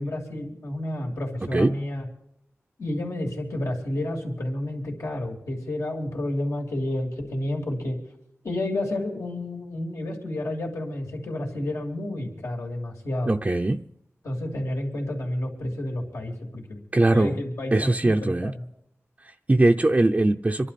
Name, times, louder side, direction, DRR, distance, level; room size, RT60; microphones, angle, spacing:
voice 1, 0.0-2.1 2.8-8.0 8.4-13.4 14.2-16.6 17.1-18.6, left 1 dB, 80° left, 3.1 m, -30 dB
voice 2, 13.3-13.8 16.9-17.4 17.7-18.5 19.2-20.7, right 2 dB, 25° right, 0.6 m, -21 dB
26.0 x 11.5 x 4.2 m
cardioid pair, 60°, 5 cm